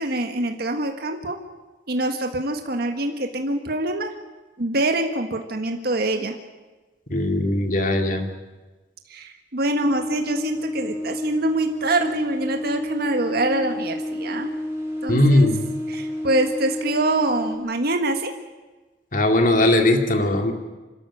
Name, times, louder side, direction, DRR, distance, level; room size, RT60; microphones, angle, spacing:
voice 1, 0.0-1.4 1.9-4.1 4.6-6.3 9.1-14.5 15.0-15.5 15.9-18.3, right 2 dB, 60° right, 4 dB, 1.6 m, -25 dB
voice 2, 7.1-8.3 15.1-15.6 19.1-20.5, left 1 dB, 50° left, 5 dB, 2.4 m, -19 dB
sound 1, 9.8-17.6, left 1 dB, 15° right, 5.7 m, -30 dB
25.5 x 13.5 x 9.9 m, 1.2 s
head